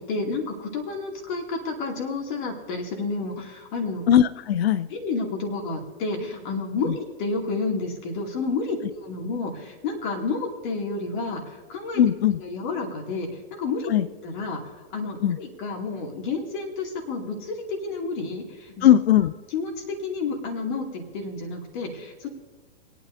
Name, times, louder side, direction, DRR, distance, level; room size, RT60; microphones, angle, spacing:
voice 1, 0.0-4.0 4.9-12.0 12.4-13.9 14.2-18.9 19.5-22.3, left 3 dB, 45° left, 1 dB, 2.5 m, -30 dB
voice 2, 4.1-4.9 12.0-12.4 13.9-14.1 15.2-15.4 18.8-19.3, left 11 dB, 65° left, 15 dB, 0.6 m, -18 dB
25.5 x 9.3 x 2.7 m, 1.3 s
hypercardioid pair, 115°, 33 cm